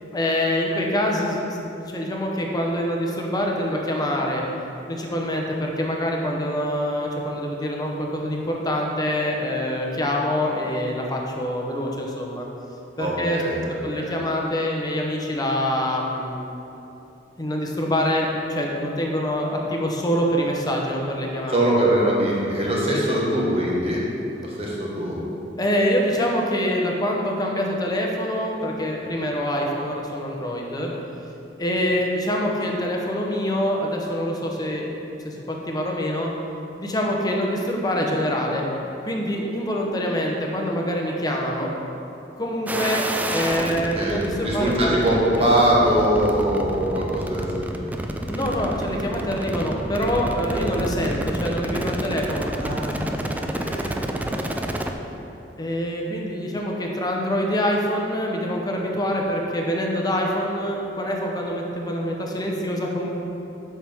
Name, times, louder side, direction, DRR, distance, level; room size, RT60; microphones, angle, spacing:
voice 1, 0.1-4.4 4.9-12.5 13.0-13.4 13.8-16.3 17.4-21.6 22.9-23.0 25.6-30.9 31.6-34.9 35.2-36.3 36.8-38.6 39.0-41.7 42.4-44.9 45.4-45.6 48.3-52.5 55.6-63.1, equal, 20° left, 0 dB, 0.8 m, -25 dB
voice 2, 13.0-14.1 21.5-24.0 24.4-25.2 43.9-47.9 51.0-51.1 52.5-52.9 53.2-54.0 54.5-54.6, right 1 dB, 35° right, -5 dB, 1.4 m, -23 dB
sound 1, 42.7-54.9, right 1 dB, 10° right, 0.3 m, -29 dB
7.7 x 5.8 x 3.5 m, 2.9 s
head